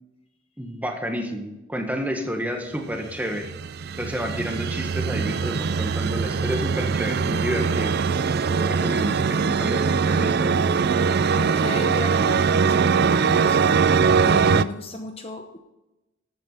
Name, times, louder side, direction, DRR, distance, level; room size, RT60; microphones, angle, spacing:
voice 1, 0.6-3.5 4.0-7.9 8.5-10.6, equal, 10° right, 3 dB, 1.6 m, -30 dB
sound 1, 3.1-14.6, right 5 dB, 50° right, 0.4 m, -22 dB
voice 2, 11.3-12.8 13.1-15.6, left 2 dB, 30° left, 5 dB, 0.8 m, -35 dB
14.0 x 9.1 x 4.1 m, 0.99 s
head